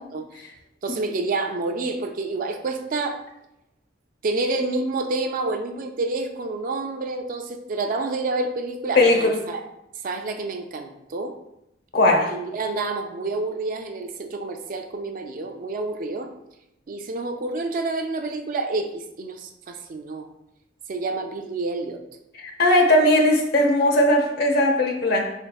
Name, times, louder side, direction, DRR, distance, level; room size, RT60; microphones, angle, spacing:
voice 1, 0.8-3.2 4.2-9.6 10.0-11.4 12.3-16.3 16.9-20.3 20.9-22.0, right 3 dB, 45° right, 5 dB, 0.4 m, -28 dB
voice 2, 9.0-9.3 11.9-12.3 22.4-25.3, left 1 dB, 55° left, 2 dB, 0.7 m, -18 dB
4.4 x 3.5 x 2.2 m, 0.85 s
head